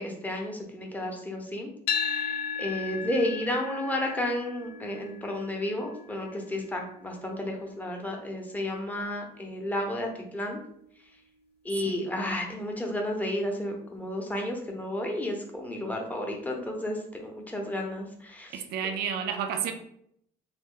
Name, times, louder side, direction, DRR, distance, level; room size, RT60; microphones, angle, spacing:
voice 1, 0.0-1.7 1.9-10.6 11.6-18.5, left 1 dB, 10° left, 0.7 m, -32 dB
sound 1, 1.9-10.1, left 6 dB, 70° left, 0.4 m, -37 dB
voice 2, 18.5-19.7, right 7 dB, 70° right, 0.4 m, -31 dB
3.1 x 2.2 x 3.7 m
cardioid pair, 110°, 17 cm